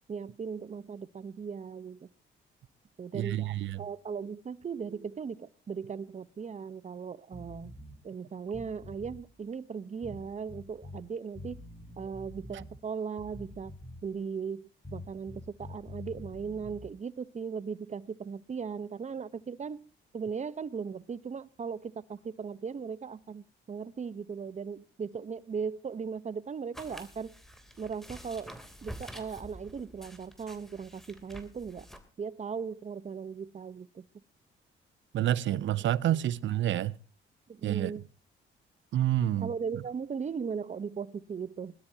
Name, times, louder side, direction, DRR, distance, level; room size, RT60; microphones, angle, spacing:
voice 1, 0.1-2.1 3.0-7.7 8.0-11.6 12.0-13.7 14.0-19.8 20.1-27.3 27.8-28.5 28.8-31.9 32.2-34.2 37.5-38.1 39.4-41.7, right 6 dB, 35° right, 1.0 m, -38 dB
voice 2, 3.1-3.8 35.1-37.0 37.6-37.9 38.9-39.5, right 12 dB, 70° right, 0.8 m, -28 dB
sound 1, 7.3-8.0 8.5-9.2 10.0-11.0 11.3-12.8 13.2-14.1 14.8-16.9, left 2 dB, 20° left, 6.5 m, -46 dB
sound 2, 26.7-32.0, equal, ahead, 3.2 m, -48 dB
22.5 x 12.5 x 2.9 m
cardioid pair, 90°, 20 cm